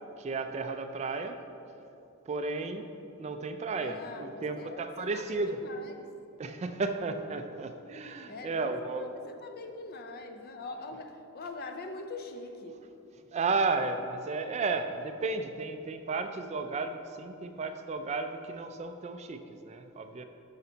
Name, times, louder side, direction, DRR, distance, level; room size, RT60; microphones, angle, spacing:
voice 1, 0.2-1.4 2.3-2.9 3.2-5.6 6.4-9.1 13.3-20.2, right 3 dB, 30° right, 8 dB, 0.3 m, -33 dB
voice 2, 3.8-6.1 8.3-12.8, left 3 dB, 45° left, 6 dB, 0.5 m, -43 dB
8.5 x 5.8 x 3.9 m, 2.9 s
head